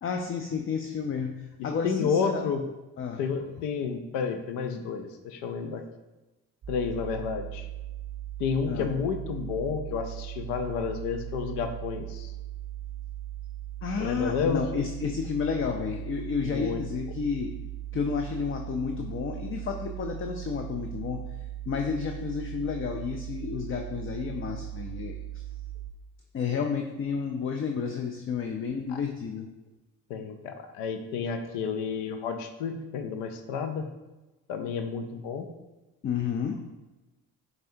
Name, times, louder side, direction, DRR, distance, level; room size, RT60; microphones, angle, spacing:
voice 1, 0.0-2.4 3.0-3.2 8.7-8.9 13.8-17.5 17.9-21.2 21.7-25.2 26.3-29.5 36.0-36.6, left 6 dB, 30° left, 4 dB, 0.4 m, -31 dB
voice 2, 1.6-2.6 3.2-5.8 6.7-7.7 8.4-12.3 14.0-14.6 16.4-16.8 28.9-29.0 30.1-33.9 34.5-35.5, left 6 dB, 85° left, 7 dB, 0.5 m, -31 dB
sound 1, 6.6-25.9, right 13 dB, 40° right, 0.6 m, -38 dB
5.5 x 3.4 x 2.6 m, 1.1 s
supercardioid pair, 60°, 41 cm